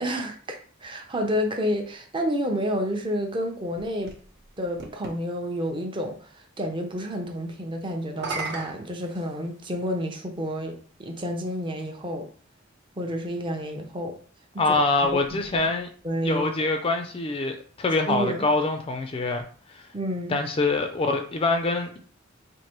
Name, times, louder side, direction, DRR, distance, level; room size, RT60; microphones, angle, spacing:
voice 1, 0.0-4.2 4.6-12.3 13.0-14.1 14.5-14.8 15.1-15.7 16.0-16.4 18.1-18.4 19.9-20.4, equal, 25° right, 0.6 m, -30 dB
sound 1, 3.8-5.2 8.0-9.8 10.7-10.8 14.5-16.1, right 3 dB, 60° right, 0.9 m, -38 dB
voice 2, 14.6-15.9 16.2-19.4 19.7-19.9 20.3-22.0, left 3 dB, 30° left, 0.4 m, -25 dB
4.5 x 2.6 x 2.9 m
head